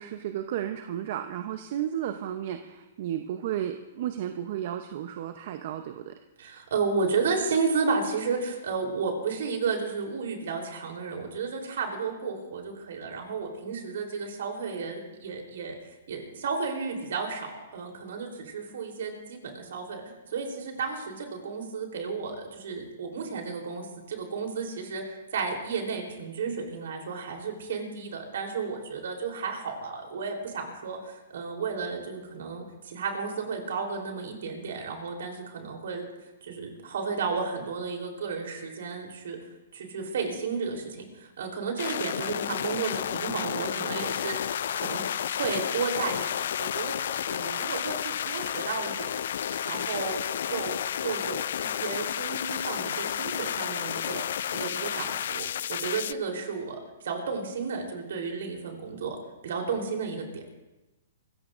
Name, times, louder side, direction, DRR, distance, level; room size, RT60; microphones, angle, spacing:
voice 1, 0.0-6.1, right 10 dB, 55° right, 7 dB, 0.8 m, -33 dB
voice 2, 6.4-15.8 16.1-20.0 20.3-36.0 36.4-39.4 39.7-47.0 47.3-49.2 49.6-50.8 51.0-59.2 59.4-60.4, right 5 dB, 70° right, 2 dB, 3.6 m, -33 dB
sound 1, 41.8-56.1, left 10 dB, 65° left, 0.3 m, -31 dB
Wooden spoons, 44.8-45.1 45.5-50.5 51.0-51.1 51.6-51.8 52.6-53.1 53.5-53.6 53.8-53.9, left 5 dB, 80° left, 3.4 m, -51 dB
25.0 x 15.0 x 2.6 m, 1.1 s
hypercardioid pair, 140°, 0 cm